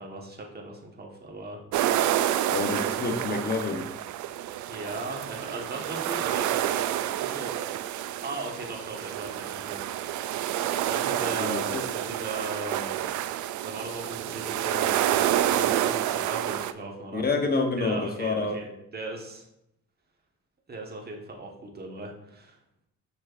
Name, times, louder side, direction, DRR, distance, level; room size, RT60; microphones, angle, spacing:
voice 1, 0.0-1.6 4.7-6.6 7.2-7.5 8.2-10.4 10.8-13.0 13.6-17.2 17.8-19.5 20.7-22.6, right 2 dB, 30° right, 0 dB, 1.4 m, -38 dB
sound 1, 1.7-16.7, right 12 dB, 75° right, 0.4 m, -28 dB
voice 2, 2.5-3.9 11.2-11.8 17.1-18.6, left 3 dB, 30° left, 4 dB, 1.1 m, -28 dB
6.3 x 6.0 x 2.6 m, 0.79 s
cardioid pair, 90°, 30 cm